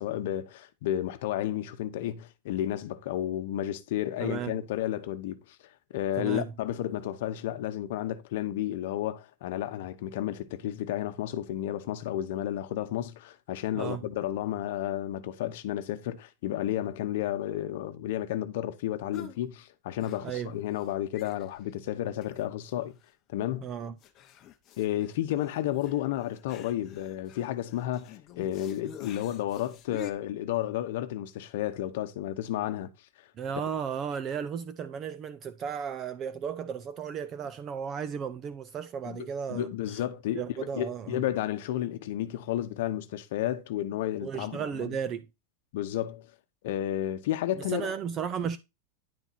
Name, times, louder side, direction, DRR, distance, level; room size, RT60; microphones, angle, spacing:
voice 1, 0.0-5.6 5.9-22.9 23.3-23.7 24.8-32.9 39.0-45.0 45.7-46.3 46.6-47.9, left 12 dB, 55° left, 1.0 m, -32 dB
voice 2, 4.2-4.6 6.2-6.5 13.7-14.1 20.2-20.5 23.6-23.9 33.4-40.0 40.3-41.2 44.2-45.3 47.6-48.6, right 7 dB, 20° right, 0.4 m, -34 dB
sound 1, 19.1-19.4 20.0-20.5 20.8-20.9 21.1-21.7 22.2-22.7 23.0-23.1 24.0-30.1, left 7 dB, 25° left, 0.9 m, -48 dB
10.5 x 4.3 x 4.3 m
supercardioid pair, 170°, 0 cm